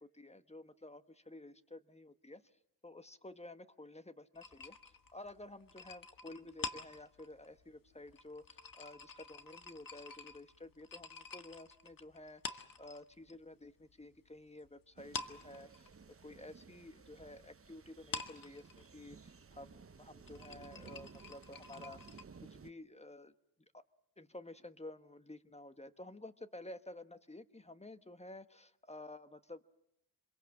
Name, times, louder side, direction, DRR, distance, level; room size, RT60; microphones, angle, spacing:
voice 1, 0.0-2.4 2.8-15.9 16.2-23.3 23.7-23.8 24.2-29.6, left 2 dB, 15° left, 10 dB, 1.4 m, -52 dB
sound 1, 4.4-13.4 13.6-14.7 15.0-22.2, left 4 dB, 55° left, 1.7 m, -48 dB
sound 2, 15.0-22.7, right 5 dB, 35° right, 1.0 m, -57 dB
27.0 x 22.0 x 7.7 m, 0.82 s
cardioid pair, 65°, 41 cm